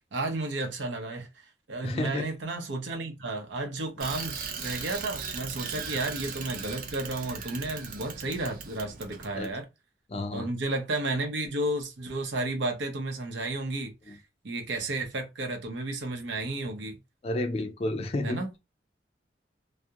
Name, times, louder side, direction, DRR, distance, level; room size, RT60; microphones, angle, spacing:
voice 1, 0.1-1.3 1.7-9.7 10.3-17.0 18.2-18.5, right 2 dB, 90° right, 0.7 m, -32 dB
voice 2, 1.8-2.2 5.8-5.9 9.4-9.5 10.1-10.5 17.2-18.4, left 2 dB, 35° left, 0.3 m, -31 dB
Bicycle, 4.0-9.5, right 6 dB, 50° right, 0.4 m, -38 dB
2.3 x 2.0 x 2.7 m
head